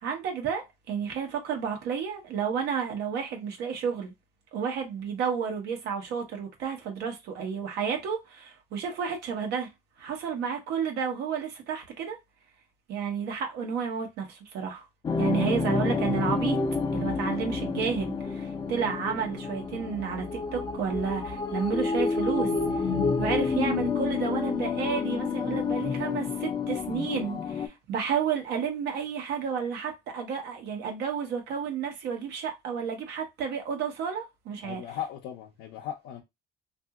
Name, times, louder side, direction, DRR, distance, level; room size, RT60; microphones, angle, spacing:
voice 1, 0.0-4.1 4.5-9.7 10.0-12.2 12.9-14.9 15.2-16.6 16.9-22.5 22.7-22.8 23.2-34.8, right 7 dB, 80° right, 1.0 m, -31 dB
sound 1, 15.0-27.7, left 4 dB, 25° left, 0.5 m, -29 dB
voice 2, 34.6-36.2, left 10 dB, 90° left, 0.6 m, -37 dB
2.8 x 2.6 x 2.3 m
cardioid pair, 110°, 17 cm